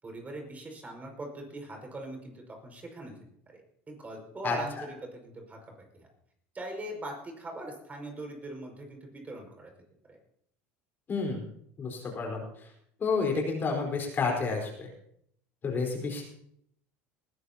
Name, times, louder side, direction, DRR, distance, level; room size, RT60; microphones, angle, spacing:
voice 1, 0.0-3.2 3.5-3.6 3.9-5.6 5.9-6.1 6.5-9.7 10.1-10.2, right 1 dB, 25° right, 2 dB, 5.7 m, -41 dB
voice 2, 11.1-11.4 11.8-12.4 13.0-14.9 15.6-16.2, left 4 dB, 35° left, 1 dB, 4.4 m, -30 dB
20.5 x 14.0 x 2.9 m, 0.69 s
supercardioid pair, 100°, 6 cm